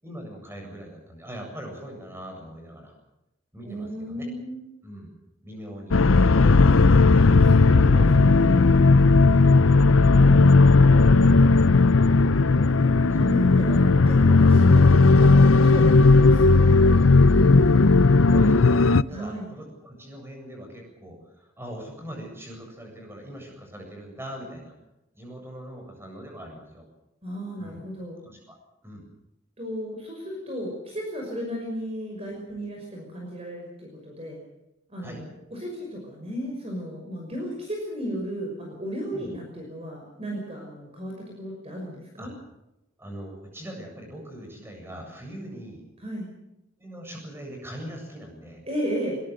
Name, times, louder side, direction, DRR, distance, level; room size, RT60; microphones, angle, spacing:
voice 1, 0.0-2.9 3.5-4.3 4.8-5.1 5.4-6.0 8.9-9.0 16.8-17.0 18.3-24.7 25.1-26.9 27.6-27.8 28.2-28.5 28.8-29.0 35.0-35.2 39.1-39.3 42.2-42.3 43.0-45.8 46.8-48.6, equal, 10° right, 1 dB, 7.7 m, -41 dB
voice 2, 3.6-4.7 7.1-8.9 12.6-17.5 19.1-19.5 27.2-28.2 29.6-34.4 34.9-42.3 46.0-46.3 48.7-49.2, equal, 30° right, 1 dB, 5.8 m, -35 dB
sound 1, 5.9-19.0, left 3 dB, 85° left, 0.7 m, -16 dB
22.5 x 22.0 x 6.7 m, 0.91 s
head